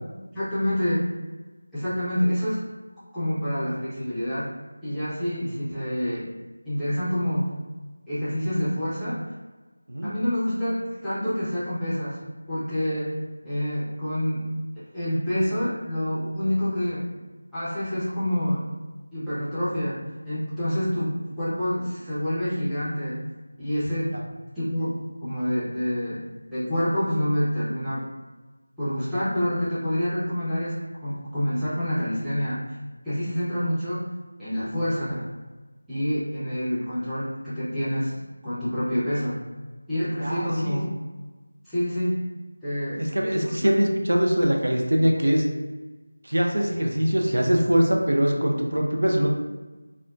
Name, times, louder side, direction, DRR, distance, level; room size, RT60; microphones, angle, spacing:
voice 1, 0.3-1.1 1.7-2.6 3.1-4.5 4.8-6.3 6.6-7.5 8.1-9.2 10.0-12.2 12.5-13.1 13.4-14.5 14.9-17.1 17.5-18.6 19.1-20.0 20.2-23.2 23.6-24.1 24.6-26.2 26.5-28.0 28.8-32.6 33.0-34.0 34.4-35.2 35.9-39.4 39.9-40.8 41.6-42.2 42.6-43.0 43.3-43.7, equal, ahead, -17 dB, 0.6 m, -27 dB
voice 2, 40.2-40.8 42.9-45.4 46.2-49.3, equal, 70° right, 0 dB, 0.5 m, -22 dB
3.6 x 2.1 x 2.3 m, 1.2 s
figure-of-eight pair, 170°, 0 cm